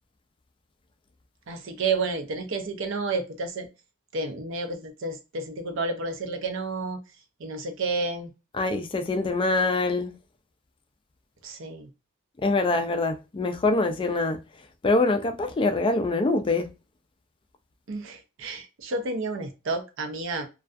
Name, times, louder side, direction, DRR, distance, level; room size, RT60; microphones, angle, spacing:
voice 1, 1.5-3.7 4.1-7.0 7.4-8.3 11.4-11.9 17.9-20.5, right 3 dB, 60° right, 0.5 m, -30 dB
voice 2, 8.5-10.1 12.4-14.4 14.8-16.7, left 2 dB, 25° left, 0.3 m, -24 dB
2.3 x 2.3 x 2.4 m
head